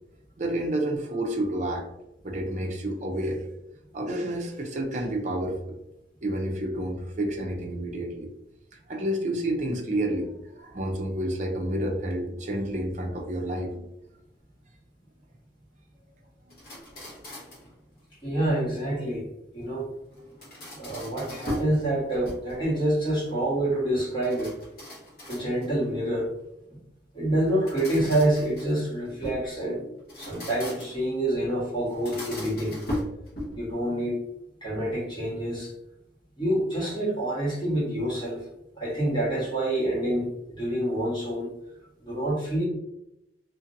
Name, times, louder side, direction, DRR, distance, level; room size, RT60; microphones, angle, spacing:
voice 1, 0.4-1.8 2.2-3.4 3.9-5.8 6.2-8.3 8.9-13.9, right 1 dB, 40° right, 1 dB, 0.5 m, -29 dB
sound 1, 16.5-17.7 20.1-21.8 22.1-22.7 24.2-25.8 27.4-29.5 30.0-31.1 31.9-33.7, left 1 dB, 55° left, 0.9 m, -38 dB
voice 2, 18.2-19.2 19.5-19.9 20.7-24.5 25.3-26.3 27.1-29.8 30.2-32.7 33.5-34.1 34.6-35.7 36.4-38.4 38.8-41.5 42.0-42.6, right 1 dB, 25° left, -8 dB, 1.4 m, -27 dB
2.7 x 2.5 x 2.6 m, 0.86 s
head